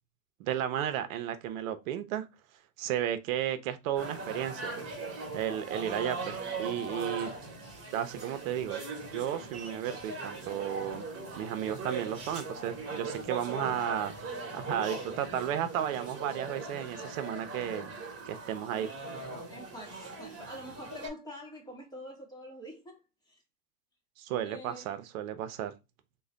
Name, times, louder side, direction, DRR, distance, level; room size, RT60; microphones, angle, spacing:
voice 1, 0.4-2.3 2.8-4.8 5.3-7.3 7.9-8.8 9.1-11.1 11.4-17.9 18.2-18.9 24.2-25.7, right 10 dB, 60° right, 0.7 m, -33 dB
sound 1, 4.0-21.1, right 3 dB, 30° right, 1.2 m, -40 dB
voice 2, 19.5-23.0 23.3-23.4 24.4-25.1, equal, 10° left, 0.9 m, -46 dB
3.1 x 2.2 x 3.6 m
hypercardioid pair, 125°, 47 cm